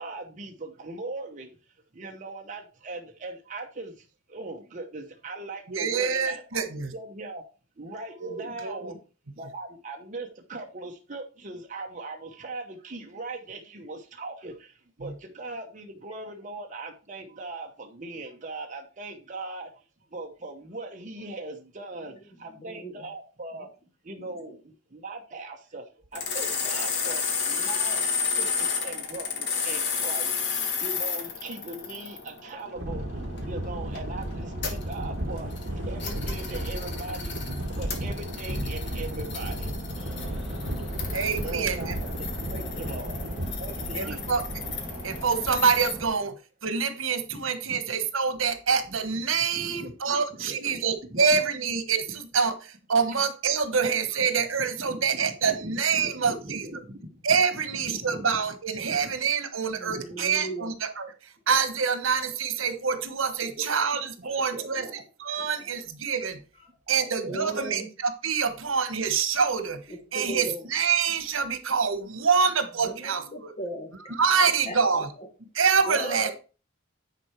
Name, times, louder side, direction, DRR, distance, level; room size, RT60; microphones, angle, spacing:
voice 1, 0.0-1.6 1.9-6.6 6.9-7.4 7.8-9.0 9.3-19.7 20.1-23.7 24.0-39.8 40.8-40.9 41.4-43.2 43.6-44.3 47.3-47.8 49.5-51.4 53.1-53.3 54.8-58.3 58.7-59.1 59.9-60.3 63.6-63.7 64.2-65.1 65.4-65.5 66.9-67.6 72.0-72.2 72.9-73.0, right 2 dB, 40° right, 1 dB, 1.0 m, -40 dB
voice 2, 5.7-6.9 8.2-8.9 15.0-15.1 41.1-41.9 43.9-44.4 45.0-46.4 46.6-56.7 57.2-61.1 61.5-64.9 65.2-66.4 66.9-69.8 70.1-73.5 74.1-75.1 75.5-76.3, right 6 dB, 80° right, 9 dB, 1.3 m, -26 dB
voice 3, 22.6-23.1 24.2-24.4 40.9-41.1 41.5-41.7 42.6-43.3 59.8-60.7 67.3-67.9 69.9-70.7 72.8-75.3 75.8-76.3, right 1 dB, 35° left, 4 dB, 1.9 m, -38 dB
sound 1, 26.1-45.9, left 5 dB, 60° left, 1.7 m, -33 dB
sound 2, 32.8-46.1, right 1 dB, 55° right, 1.4 m, -34 dB
sound 3, 39.9-46.1, equal, 5° right, 2.4 m, -42 dB
9.6 x 4.7 x 4.6 m, 0.34 s
head